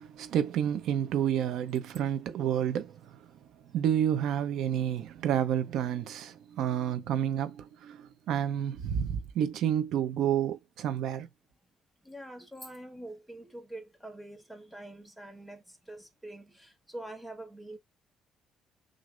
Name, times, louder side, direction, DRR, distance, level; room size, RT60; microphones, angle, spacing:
voice 1, 0.0-3.2 3.7-11.3, right 9 dB, 70° right, 0.8 m, -30 dB
voice 2, 12.0-17.8, right 1 dB, ahead, 1.2 m, -45 dB
6.2 x 2.7 x 2.5 m
cardioid pair, 140°, 0 cm